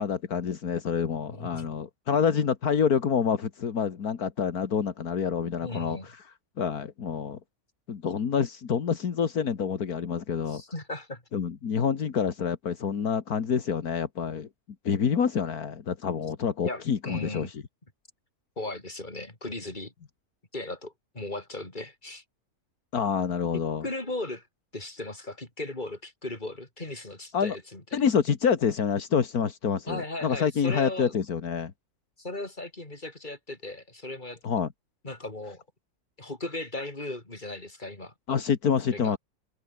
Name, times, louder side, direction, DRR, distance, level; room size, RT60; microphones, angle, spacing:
voice 1, 0.0-6.1 6.6-7.4 7.9-10.6 11.3-14.5 14.9-17.6 22.9-23.9 27.3-27.6 27.9-31.7 34.4-34.7 38.3-39.2, left 7 dB, 80° left, 2.1 m, -27 dB
voice 2, 1.3-1.7 5.6-6.1 10.5-11.2 16.6-17.5 18.6-19.9 20.5-22.2 23.5-24.5 24.7-28.1 29.9-31.1 32.2-34.4 35.0-35.6 36.2-38.1 38.9-39.2, left 2 dB, 30° left, 4.5 m, -37 dB
omnidirectional pair, 1.6 m